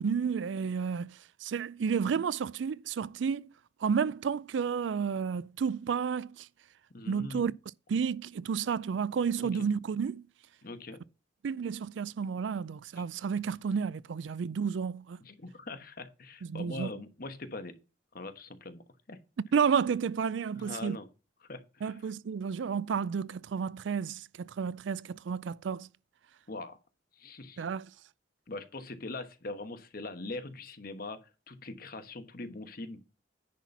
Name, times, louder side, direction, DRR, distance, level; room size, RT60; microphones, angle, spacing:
voice 1, 0.0-3.5 3.8-6.5 7.0-7.5 7.9-10.3 11.4-15.2 16.5-16.9 19.4-21.0 21.8-25.9 27.6-27.9, right 6 dB, 75° right, 0.4 m, -31 dB
voice 2, 6.9-7.5 9.4-9.6 10.6-11.0 15.2-17.7 18.1-19.2 20.5-21.1 21.5-22.0 26.5-26.8 27.2-27.6 28.5-33.0, left 2 dB, 50° left, 1.2 m, -42 dB
10.0 x 4.2 x 5.8 m
head